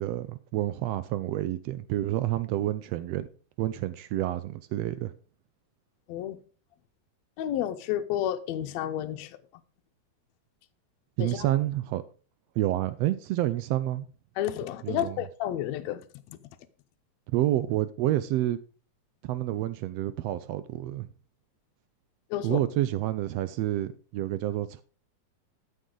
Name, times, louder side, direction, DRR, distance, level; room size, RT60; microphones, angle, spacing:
voice 1, 0.0-3.3 3.6-5.1 11.2-12.0 12.6-14.1 14.8-15.2 17.3-18.6 19.2-21.1 22.4-24.8, right 14 dB, 80° right, 1.4 m, -29 dB
voice 2, 7.4-9.4 11.2-11.5 14.4-16.4 22.3-22.6, left 11 dB, 75° left, 1.9 m, -31 dB
13.0 x 6.5 x 3.8 m
omnidirectional pair, 3.4 m